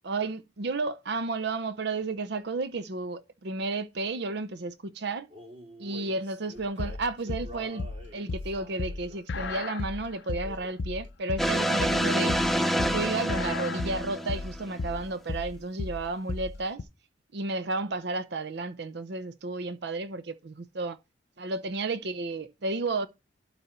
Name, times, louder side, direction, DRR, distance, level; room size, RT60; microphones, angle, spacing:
voice 1, 0.0-5.3 5.8-7.8 8.1-12.4 12.9-16.8 17.3-21.0 21.4-23.1, right 3 dB, 65° right, 0.6 m, -32 dB
Male singing, 5.3-9.7 10.4-10.9 11.5-11.8 12.0-13.0, left 1 dB, 30° right, 2.8 m, -48 dB
sound 1, 6.6-16.8, left 3 dB, 70° left, 0.5 m, -34 dB
sound 2, 11.4-14.8, equal, ahead, 0.5 m, -27 dB
12.0 x 4.0 x 4.3 m
head